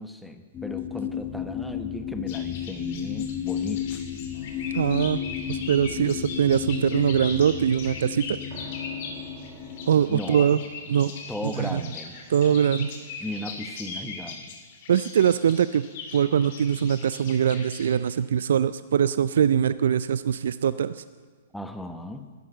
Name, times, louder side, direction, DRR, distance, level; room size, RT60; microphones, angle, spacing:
voice 1, 0.0-4.0 10.1-10.5 11.3-12.2 13.2-14.5 21.5-22.3, left 1 dB, 5° left, 7 dB, 1.1 m, -36 dB
sound 1, 0.5-10.6 11.2-11.3, left 9 dB, 25° left, 1.2 m, -33 dB
sound 2, 2.3-18.0, left 4 dB, 55° left, 2.9 m, -40 dB
sound 3, 4.3-7.0 8.5-13.1, right 5 dB, 40° right, 1.8 m, -50 dB
voice 2, 4.7-5.2 5.5-8.4 9.9-10.6 10.9-11.1 11.6-11.8 12.3-12.9 14.9-15.8 16.1-21.0, right 8 dB, 70° right, 15 dB, 0.4 m, -22 dB
13.5 x 11.0 x 8.0 m, 1.5 s
hypercardioid pair, 120°, 0 cm